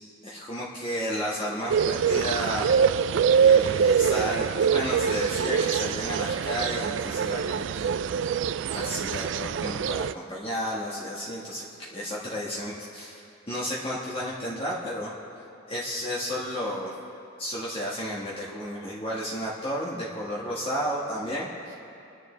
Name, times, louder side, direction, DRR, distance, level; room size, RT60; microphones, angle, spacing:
voice 1, 0.0-2.7 3.4-7.9 8.7-13.2 13.5-15.1 15.7-16.9 17.4-21.7, equal, 30° left, -6 dB, 1.7 m, -32 dB
sound 1, 1.7-10.1, right 7 dB, 70° right, 0.3 m, -24 dB
27.0 x 10.5 x 3.3 m, 2.7 s
head